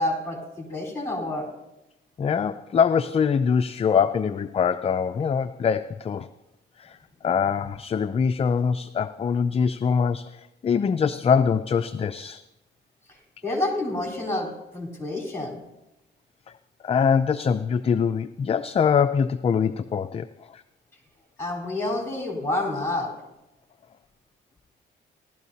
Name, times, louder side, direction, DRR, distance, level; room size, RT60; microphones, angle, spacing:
voice 1, 0.0-1.5 13.4-15.6 21.4-23.1, left 2 dB, 10° left, 0 dB, 3.9 m, -28 dB
voice 2, 2.2-6.3 6.8-7.0 7.2-12.4 16.8-20.3 20.5-20.6, left 6 dB, 30° left, 10 dB, 0.4 m, -23 dB
16.0 x 12.5 x 2.8 m, 0.95 s
cardioid pair, 90°, 20 cm